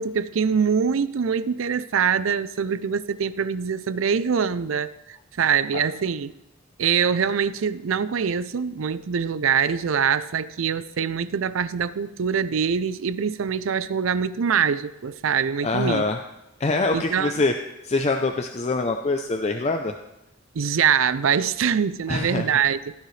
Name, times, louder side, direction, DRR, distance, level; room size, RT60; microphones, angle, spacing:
voice 1, 0.0-6.3 6.8-16.0 16.9-17.3 20.6-22.9, right 7 dB, 85° right, 16 dB, 0.5 m, -24 dB
voice 2, 15.6-16.2 16.6-17.5 17.8-19.9 22.1-22.5, left 3 dB, 35° left, 4 dB, 0.5 m, -24 dB
16.0 x 9.6 x 3.2 m, 0.91 s
head